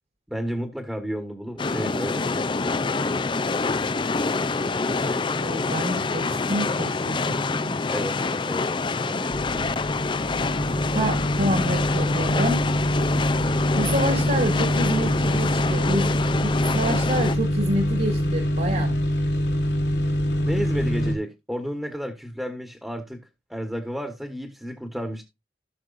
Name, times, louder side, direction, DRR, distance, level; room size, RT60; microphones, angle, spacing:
voice 1, 0.3-2.5 7.9-8.7 9.0-9.8 20.4-23.2 23.5-25.2, equal, 5° right, 1.4 m, -32 dB
sound 1, 1.6-17.4, left 3 dB, 25° left, 0.4 m, -26 dB
voice 2, 5.4-7.8 10.9-12.6 13.8-18.9, right 1 dB, 50° right, 2.3 m, -28 dB
sound 2, 9.3-21.1, equal, 85° left, 3.5 m, -25 dB
17.0 x 6.4 x 2.5 m
head